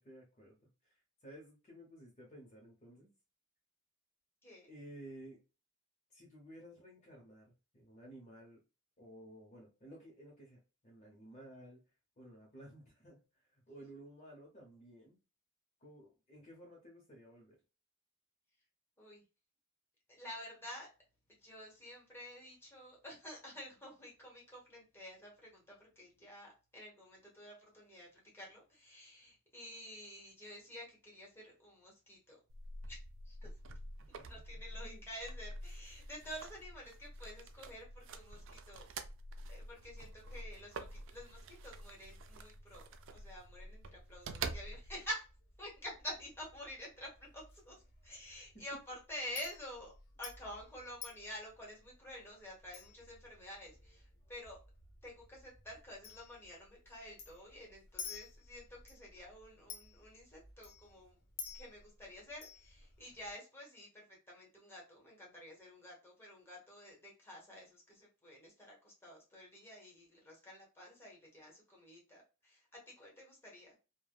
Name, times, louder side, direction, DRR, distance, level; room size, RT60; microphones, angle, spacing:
voice 1, 0.0-3.1 4.7-5.4 6.1-7.4 7.7-8.6 9.0-11.8 12.2-15.2 15.8-17.6 34.7-35.0, right 1 dB, 35° left, -3 dB, 0.8 m, -55 dB
voice 2, 20.1-20.9 21.4-32.4 32.9-33.0 33.2-33.5 34.3-38.9 39.5-45.3 45.6-47.7 48.0-49.9 50.2-54.6 55.0-61.2 61.5-73.8, equal, 10° left, -3 dB, 1.1 m, -50 dB
sound 1, 32.5-45.1, right 3 dB, 60° right, 0.4 m, -47 dB
Chink clink, 45.1-63.3, left 5 dB, 60° left, 0.9 m, -54 dB
3.3 x 2.2 x 2.2 m, 0.31 s
head